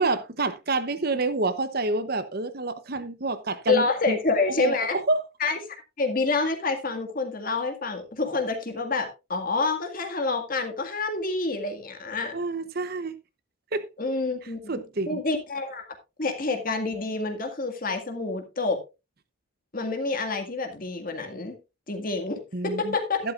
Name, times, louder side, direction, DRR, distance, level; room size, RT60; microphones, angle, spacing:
voice 1, 0.0-4.2 4.5-5.2 12.3-13.1 13.7-13.9 14.7-15.2 22.5-22.9 23.2-23.3, right 3 dB, 45° right, 0.9 m, -28 dB
voice 2, 3.7-5.0 5.4-5.6 6.0-12.4 14.0-15.9 16.2-18.8 19.7-21.6 21.9-23.3, left 3 dB, 40° left, 1.9 m, -28 dB
12.0 x 12.0 x 2.5 m
head